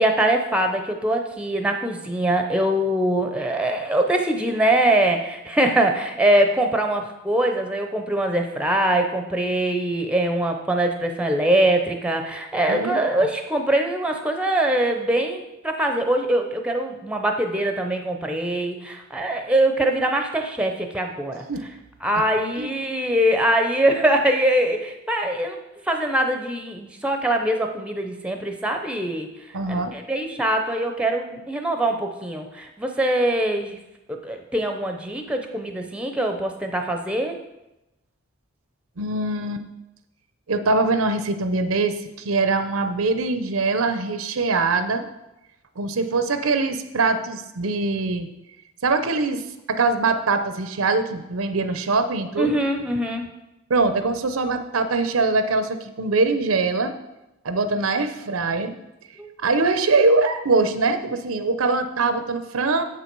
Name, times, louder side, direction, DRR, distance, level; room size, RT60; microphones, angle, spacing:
voice 1, 0.0-21.4 22.0-25.6 25.9-29.3 29.7-33.8 34.1-37.4 52.4-53.3 59.2-59.3, right 1 dB, 5° right, 4 dB, 0.6 m, -23 dB
voice 2, 12.7-13.3 21.5-21.7 22.6-22.7 29.5-29.9 39.0-39.6 40.5-45.1 45.8-48.3 48.8-49.4 49.7-52.6 53.7-56.9 57.4-58.7 59.4-62.8, right 3 dB, 85° right, 9 dB, 0.7 m, -22 dB
7.6 x 6.8 x 4.6 m, 0.95 s
head